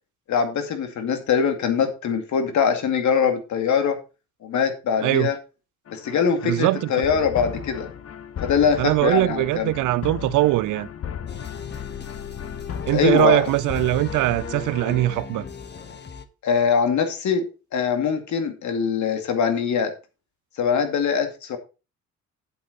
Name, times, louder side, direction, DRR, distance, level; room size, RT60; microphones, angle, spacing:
voice 1, 0.3-4.0 4.4-5.4 5.9-7.9 8.4-9.7 12.9-13.4 16.4-19.9 20.6-21.6, left 6 dB, 70° left, 2.3 m, -22 dB
sound 1, 5.9-15.0, left 8 dB, 50° left, 1.1 m, -36 dB
voice 2, 6.4-6.9 8.8-10.9 12.9-15.4, right 17 dB, 85° right, 0.6 m, -21 dB
sound 2, 11.3-16.3, left 5 dB, 35° left, 1.3 m, -37 dB
8.5 x 8.5 x 4.0 m
cardioid pair, 90°, 30 cm